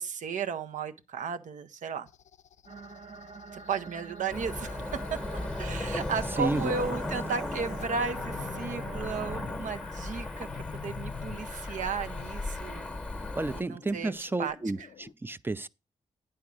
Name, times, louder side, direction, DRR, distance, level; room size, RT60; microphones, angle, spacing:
voice 1, 0.0-2.1 3.7-5.2 5.6-12.9 13.5-14.5, right 5 dB, 90° right, 0.8 m, -34 dB
sound 1, 2.1-15.1, left 8 dB, 70° left, 0.4 m, -48 dB
sound 2, 2.7-9.5, right 5 dB, 60° right, 1.6 m, -44 dB
Cricket / Motor vehicle (road), 4.3-13.6, left 2 dB, 10° left, 0.9 m, -36 dB
voice 2, 6.4-7.0 13.4-15.7, right 2 dB, 15° right, 0.4 m, -32 dB
9.7 x 4.6 x 6.2 m
wide cardioid pair, 105°, 13 cm